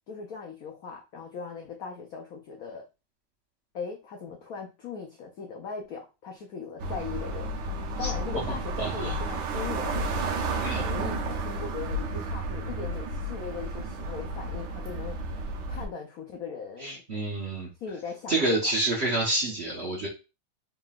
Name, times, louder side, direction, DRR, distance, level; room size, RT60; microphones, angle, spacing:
voice 1, 0.1-2.8 3.7-7.5 8.0-15.2 15.7-17.0 17.8-18.3 18.6-18.7, left 5 dB, 85° left, 1 dB, 0.8 m, -39 dB
sound 1, 6.8-15.9, right 2 dB, 65° right, 1.2 m, -32 dB
voice 2, 8.8-9.2 10.6-10.9 16.8-17.7 18.3-20.1, right 2 dB, 45° right, -2 dB, 0.9 m, -28 dB
3.8 x 3.7 x 2.4 m, 0.29 s
omnidirectional pair, 2.3 m